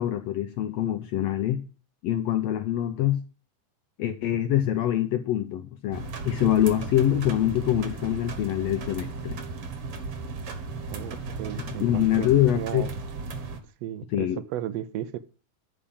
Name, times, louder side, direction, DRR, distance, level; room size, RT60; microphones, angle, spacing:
voice 1, 0.0-1.6 2.0-3.2 4.0-9.4 11.7-12.9 14.1-14.4, left 12 dB, 80° left, 1.5 m, -25 dB
sound 1, 5.9-13.6, right 4 dB, 55° right, 1.9 m, -36 dB
voice 2, 10.9-12.3 12.6-12.9 13.8-15.2, right 11 dB, 80° right, 1.5 m, -34 dB
10.0 x 5.0 x 7.0 m
omnidirectional pair, 3.7 m